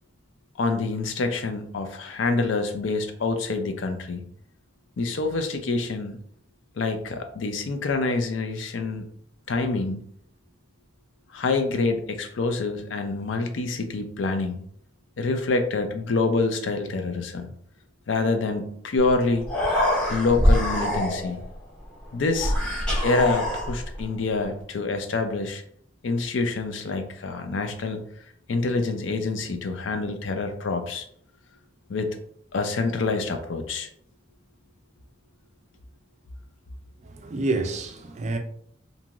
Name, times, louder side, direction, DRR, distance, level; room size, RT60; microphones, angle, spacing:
voice 1, 0.6-4.2 5.0-6.2 6.8-9.1 9.5-10.0 11.3-14.6 15.2-17.5 18.1-19.5 20.1-21.4 22.1-22.5 23.0-25.6 26.0-28.1 28.5-31.0 31.9-32.2 32.5-33.9, left 3 dB, 75° left, 0.5 m, -26 dB
Human voice, 19.1-19.2 19.4-21.4 22.3-24.0, equal, 5° left, 0.7 m, -24 dB
voice 2, 37.0-38.4, right 2 dB, 35° right, 0.3 m, -28 dB
2.6 x 2.3 x 2.9 m
head